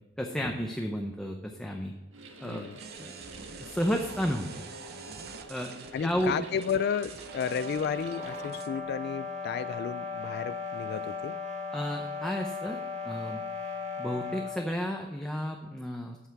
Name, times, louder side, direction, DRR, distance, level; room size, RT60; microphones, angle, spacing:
voice 1, 0.2-1.9 2.4-2.7 3.0-3.2 3.6-4.5 5.5-5.8 6.0-6.5 11.7-12.8 13.0-13.4 14.0-16.3, equal, 5° left, 2 dB, 0.7 m, -32 dB
sound 1, 2.1-8.5, right 2 dB, 75° right, 1.6 m, -47 dB
voice 2, 2.4-2.8 5.9-11.4, left 7 dB, 55° left, 14 dB, 0.3 m, -33 dB
sound 2, 2.8-8.8, right 6 dB, 55° right, 0.7 m, -47 dB
sound 3, 7.2-14.7, left 4 dB, 35° right, 1.5 m, -37 dB
12.5 x 5.8 x 4.6 m, 1.2 s
head